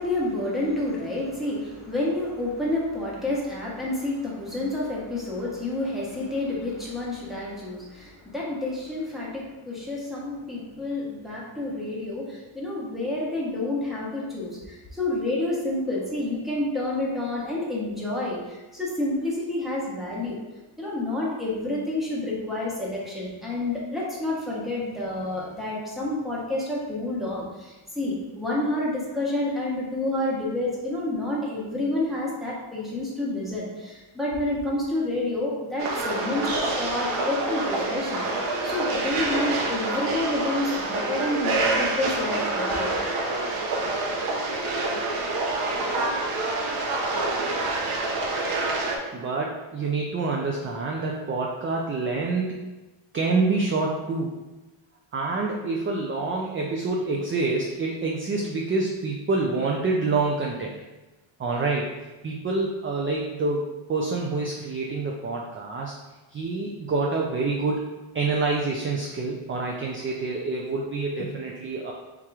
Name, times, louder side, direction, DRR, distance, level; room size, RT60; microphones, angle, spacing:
voice 1, 0.0-20.4 20.8-42.9, left 2 dB, ahead, -6 dB, 1.1 m, -29 dB
sound 1, 35.8-49.0, right 2 dB, 85° right, 0.9 m, -27 dB
voice 2, 49.1-52.6 53.1-54.3 55.1-60.7 61.4-61.9 62.2-65.9 66.3-67.9 68.1-71.9, right 3 dB, 30° right, -1 dB, 0.4 m, -27 dB
3.7 x 2.9 x 4.7 m, 1.1 s
cardioid pair, 130°, 50 cm